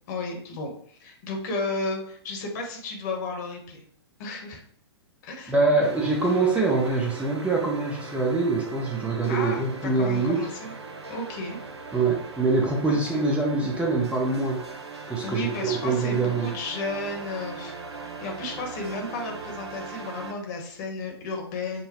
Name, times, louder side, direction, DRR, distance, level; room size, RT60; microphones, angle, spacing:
voice 1, 0.1-3.8 4.2-4.6 5.2-5.8 9.3-10.7 11.1-11.6 12.9-13.2 15.2-21.8, left 2 dB, 40° left, 2 dB, 1.2 m, -33 dB
voice 2, 5.5-10.5 11.9-14.6 15.1-16.5, right 3 dB, 10° right, -1 dB, 0.7 m, -24 dB
sound 1, 5.8-20.3, right 4 dB, 70° right, 0.7 m, -39 dB
5.4 x 2.2 x 4.2 m, 0.62 s
figure-of-eight pair, 110°, 14 cm